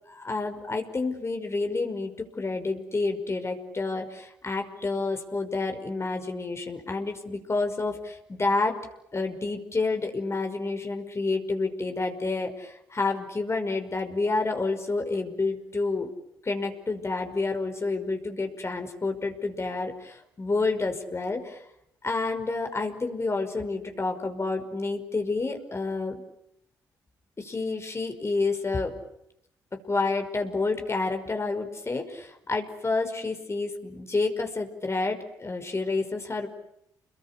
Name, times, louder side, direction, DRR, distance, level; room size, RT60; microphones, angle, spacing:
voice 1, 0.1-8.8 9.1-16.1 16.4-21.6 22.0-26.2 27.4-29.0 29.7-36.5, left 3 dB, 35° left, 5 dB, 5.5 m, -29 dB
29.5 x 22.5 x 8.4 m, 0.79 s
supercardioid pair, 50°, 8 cm